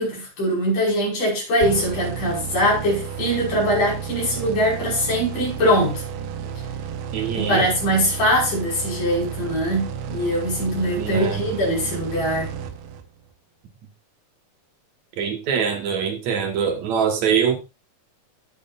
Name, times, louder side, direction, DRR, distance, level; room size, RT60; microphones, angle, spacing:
voice 1, 0.0-6.0 7.4-12.5, equal, 70° left, 7.6 m, -22 dB
sound 1, 1.6-13.3, right 7 dB, 90° right, 2.8 m, -32 dB
voice 2, 7.1-7.6 11.0-11.5 15.2-17.6, right 7 dB, 60° right, 2.7 m, -23 dB
18.0 x 6.7 x 2.6 m
omnidirectional pair, 4.0 m